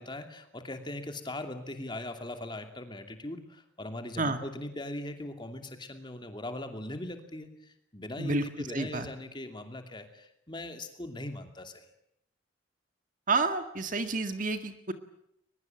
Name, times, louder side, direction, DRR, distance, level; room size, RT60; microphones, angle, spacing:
voice 1, 0.0-11.8, left 1 dB, 25° left, 6 dB, 2.7 m, -40 dB
voice 2, 8.2-9.1 13.3-14.9, right 3 dB, 40° right, 8 dB, 1.9 m, -30 dB
22.5 x 21.5 x 9.0 m, 0.77 s
head